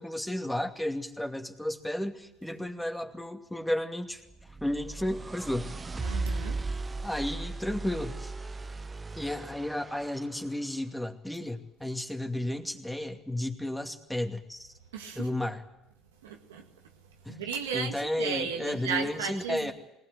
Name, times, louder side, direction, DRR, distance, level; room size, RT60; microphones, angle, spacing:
voice 1, 0.0-4.2 4.6-5.7 7.0-8.3 9.2-14.7 15.1-15.6 17.2-19.7, left 1 dB, 5° left, 5 dB, 2.5 m, -33 dB
sound 1, 4.3-10.4, right 3 dB, 25° right, 1.1 m, -37 dB
voice 2, 6.0-6.6 14.9-15.3 16.2-16.7 17.3-19.7, right 6 dB, 85° right, 4 dB, 1.9 m, -35 dB
20.5 x 19.0 x 8.0 m, 0.92 s
hypercardioid pair, 65°, 0 cm